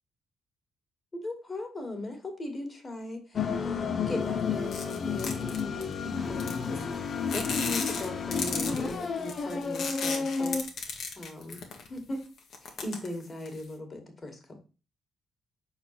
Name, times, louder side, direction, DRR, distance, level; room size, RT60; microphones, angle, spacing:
voice 1, 1.1-10.6 11.2-11.6 11.9-12.2 12.6-14.6, left 2 dB, 30° left, 4 dB, 2.2 m, -38 dB
sound 1, 3.3-10.6, left 5 dB, 50° left, 0.8 m, -31 dB
sound 2, 4.7-5.9 6.4-6.9 7.3-12.0 12.4-13.6, left 4 dB, 65° left, 1.5 m, -35 dB
5.3 x 4.4 x 5.9 m, 0.34 s
cardioid pair, 90°, 0 cm